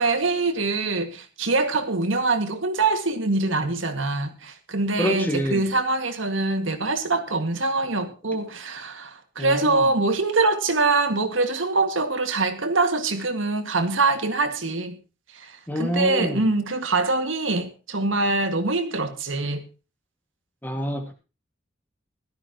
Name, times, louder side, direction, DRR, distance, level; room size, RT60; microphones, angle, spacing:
voice 1, 0.0-15.0 15.3-19.6, right 3 dB, 80° right, 1.9 m, -24 dB
voice 2, 5.0-5.6 9.4-9.8 15.7-16.5 20.6-21.1, equal, 10° left, 2.0 m, -27 dB
16.5 x 13.0 x 3.0 m
head